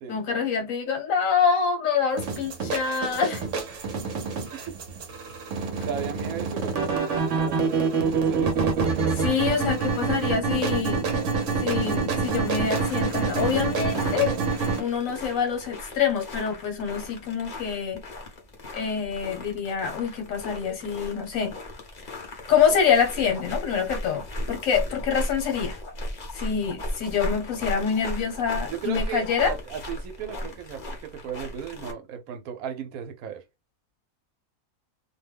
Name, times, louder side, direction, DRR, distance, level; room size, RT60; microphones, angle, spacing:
voice 1, 0.1-3.5 9.1-11.0 11.6-14.4 14.8-18.0 18.7-21.6 22.5-25.8 26.3-29.5, left 7 dB, 70° left, 1.3 m, -26 dB
sound 1, 2.2-14.8, right 4 dB, 60° right, 1.0 m, -26 dB
voice 2, 5.5-8.5 28.7-33.4, right 8 dB, 85° right, 1.1 m, -36 dB
sound 2, 12.2-31.9, left 1 dB, 40° left, 0.7 m, -37 dB
2.7 x 2.1 x 3.3 m
omnidirectional pair, 1.5 m